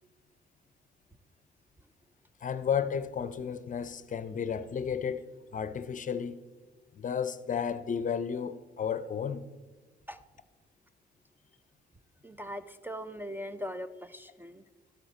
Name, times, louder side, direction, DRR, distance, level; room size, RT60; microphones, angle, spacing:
voice 1, 2.4-5.3 5.5-6.4 6.9-9.5, left 7 dB, 40° left, 0.6 m, -33 dB
voice 2, 12.2-14.6, equal, 10° right, 0.4 m, -40 dB
12.5 x 7.9 x 4.3 m
cardioid pair, 90°, 20 cm